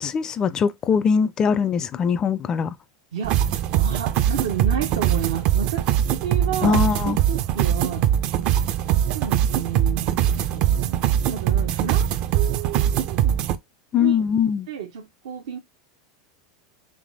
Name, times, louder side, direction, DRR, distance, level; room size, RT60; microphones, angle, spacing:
voice 1, 0.0-2.7 6.6-7.2 13.9-14.7, left 6 dB, 30° left, 0.4 m, -21 dB
voice 2, 3.1-3.4 3.8-8.1 8.9-12.1 12.3-13.4 14.0-14.2 14.7-15.6, right 8 dB, 80° right, 0.7 m, -31 dB
sound 1, 3.2-13.5, right 10 dB, 50° right, 0.5 m, -22 dB
3.4 x 3.3 x 3.8 m
hypercardioid pair, 110°, 2 cm